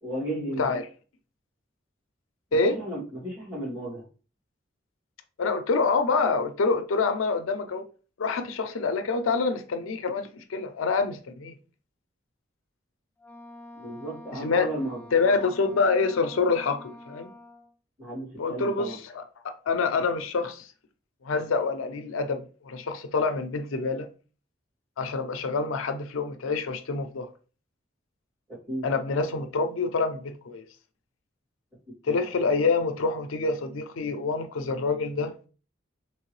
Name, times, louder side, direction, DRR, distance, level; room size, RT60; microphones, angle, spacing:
voice 1, 0.0-0.6 2.6-4.1 13.8-15.0 18.0-19.0 28.5-28.9 32.1-32.3, right 1 dB, 10° right, 2.2 m, -34 dB
voice 2, 0.5-0.9 2.5-2.8 5.4-7.8 8.2-11.6 14.3-14.7 15.1-17.3 18.4-20.7 21.2-24.1 25.0-27.3 28.8-30.6 32.0-35.3, left 4 dB, 90° left, 0.5 m, -26 dB
Wind instrument woodwind instrument, 13.2-17.7, left 1 dB, 10° left, 0.5 m, -46 dB
3.6 x 3.1 x 3.1 m
head